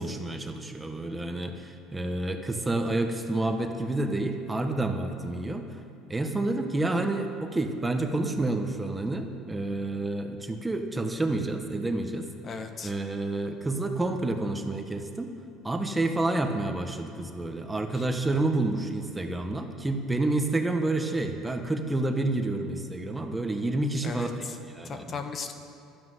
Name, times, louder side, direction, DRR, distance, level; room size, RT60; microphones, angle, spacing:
voice 1, 0.0-5.8 6.1-12.3 12.8-15.3 15.6-25.2, right 2 dB, 15° right, 5 dB, 1.4 m, -29 dB
voice 2, 12.4-12.9 17.9-18.0 24.0-24.5 24.8-25.5, left 5 dB, 40° left, 6 dB, 1.2 m, -37 dB
12.0 x 9.6 x 9.4 m, 2.6 s
supercardioid pair, 90°, 0 cm